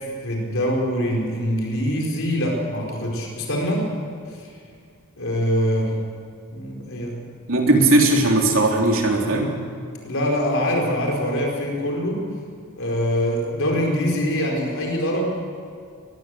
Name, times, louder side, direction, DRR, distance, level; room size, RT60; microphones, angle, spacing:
voice 1, 0.2-3.8 5.2-5.9 6.5-7.2 10.0-12.2 12.8-15.3, equal, 60° left, -1 dB, 4.6 m, -23 dB
voice 2, 7.5-9.5, right 2 dB, 65° right, 1 dB, 3.6 m, -18 dB
23.0 x 20.0 x 7.8 m, 2.3 s
head